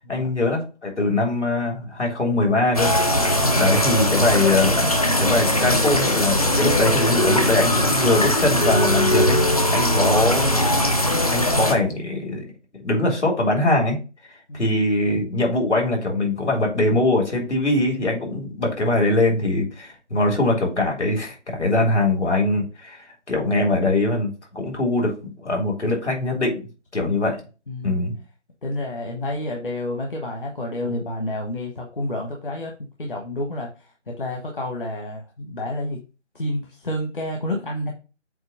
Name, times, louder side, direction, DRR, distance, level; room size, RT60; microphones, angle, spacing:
voice 1, 0.1-2.9 3.6-4.9 5.2-9.4 9.7-10.6 11.3-12.4 12.8-14.0 14.5-25.1 25.4-26.7 26.9-27.4 27.8-28.1, left 2 dB, 70° left, 0 dB, 3.4 m, -22 dB
sound 1, 2.7-11.7, left 1 dB, 30° left, 0.8 m, -20 dB
voice 2, 27.7-28.0 28.6-32.7 33.0-36.0 36.3-37.9, left 1 dB, 45° left, 0 dB, 1.3 m, -29 dB
7.9 x 2.9 x 5.1 m, 0.32 s
figure-of-eight pair, 170°, 36 cm